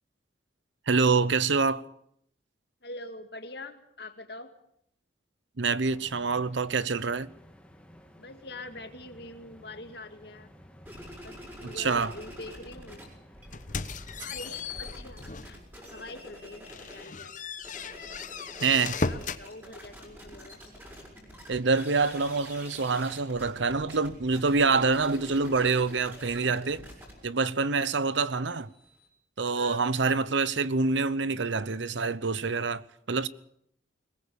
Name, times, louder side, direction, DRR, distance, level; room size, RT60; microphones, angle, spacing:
voice 1, 0.9-1.8 5.6-7.3 11.8-12.1 18.6-19.0 21.5-26.9 27.2-28.7 29.4-33.3, right 4 dB, 80° right, 0.9 m, -26 dB
voice 2, 2.8-4.5 8.2-10.5 11.2-13.0 14.2-15.6 15.9-17.4 19.1-20.6 29.5-29.8, left 2 dB, 60° left, 2.1 m, -44 dB
sound 1, 5.9-14.9, equal, 5° left, 1.7 m, -54 dB
sound 2, 10.8-13.0 13.3-17.1 17.5-29.1, equal, 10° right, 6.5 m, -47 dB
sound 3, 13.5-15.6 16.1-16.2 16.6-19.5, left 4 dB, 40° left, 1.0 m, -36 dB
22.0 x 20.0 x 7.0 m
head